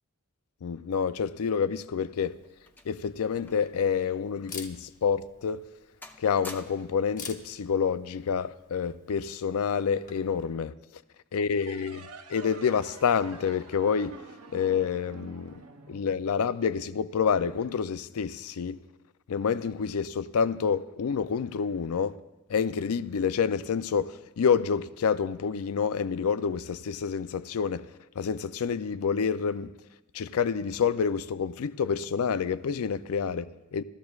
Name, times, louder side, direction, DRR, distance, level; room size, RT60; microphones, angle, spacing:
voice 1, 0.6-2.3 2.9-5.7 6.2-10.7 11.3-14.2 14.5-15.6 15.9-18.8 19.3-22.2 22.5-27.9 28.2-29.7 30.1-33.8, left 6 dB, 75° left, 0.4 m, -28 dB
sound 1, 1.7-3.8 4.1-4.3 4.9-5.1 5.5-5.8 6.0-7.1 8.1-8.3, left 2 dB, 10° left, 0.5 m, -49 dB
Camera, 2.1-10.5, left 6 dB, 35° left, 0.9 m, -49 dB
sound 2, 11.5-16.8, right 3 dB, 80° right, 0.8 m, -47 dB
15.5 x 13.5 x 2.4 m
head